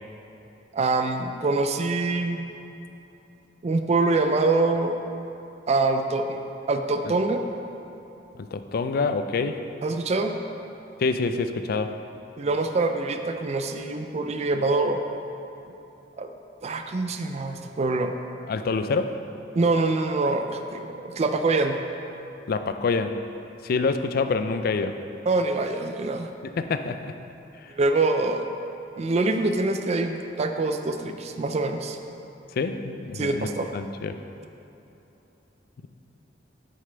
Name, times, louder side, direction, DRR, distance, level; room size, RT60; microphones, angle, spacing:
voice 1, 0.7-2.5 3.6-5.0 5.7-6.4 6.7-7.4 9.8-10.3 12.4-15.0 16.2-16.3 16.6-18.1 19.6-21.8 25.3-26.3 27.7-28.5 29.0-32.0 33.2-33.7, right 3 dB, 35° right, 6 dB, 0.4 m, -25 dB
voice 2, 8.4-9.6 11.0-12.0 18.5-19.2 22.5-23.2 23.6-25.0 26.4-27.1 27.6-27.7 32.6-34.1, left 4 dB, 55° left, 9 dB, 0.4 m, -26 dB
8.7 x 6.5 x 3.3 m, 2.9 s
head